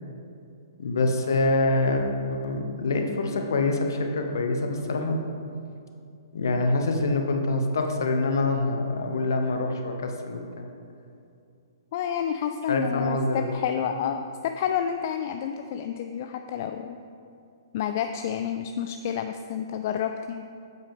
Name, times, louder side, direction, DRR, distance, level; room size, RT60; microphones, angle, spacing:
voice 1, 0.8-5.2 6.3-10.7 12.7-13.6, left 2 dB, 60° left, 4 dB, 1.0 m, -25 dB
voice 2, 11.9-17.0 17.7-20.4, left 8 dB, 45° left, 7 dB, 0.3 m, -29 dB
8.9 x 7.9 x 3.7 m, 2.5 s
figure-of-eight pair, 115°, 2 cm